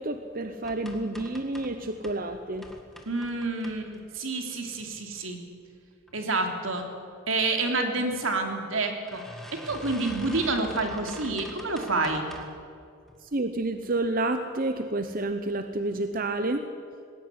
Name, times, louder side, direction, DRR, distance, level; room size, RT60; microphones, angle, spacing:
voice 1, 0.0-2.7 13.2-16.7, right 2 dB, 45° right, 8 dB, 0.9 m, -29 dB
sound 1, 0.6-2.2 2.6-4.2 4.7-5.3 5.7-6.2 6.4-6.5 6.8-6.9 7.9-8.1 8.4-8.5 9.1-12.6 13.1-13.5 14.0-14.1 14.4-14.5, equal, ahead, 1.9 m, -45 dB
voice 2, 3.1-5.4 6.1-6.9 7.3-9.2 9.5-12.2, right 3 dB, 85° right, 3 dB, 3.1 m, -28 dB
20.0 x 16.5 x 9.7 m, 2.3 s
head